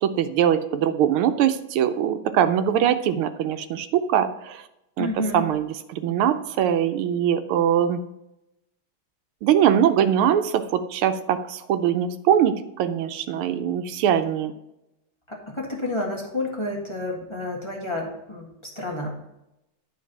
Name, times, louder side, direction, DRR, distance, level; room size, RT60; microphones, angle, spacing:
voice 1, 0.0-4.6 5.0-5.1 5.3-8.0 9.4-14.5, right 9 dB, 90° right, 10 dB, 1.6 m, -22 dB
voice 2, 5.0-5.5 15.3-19.3, left 2 dB, 15° left, -2 dB, 1.4 m, -30 dB
11.0 x 4.0 x 5.9 m, 0.88 s
omnidirectional pair, 2.3 m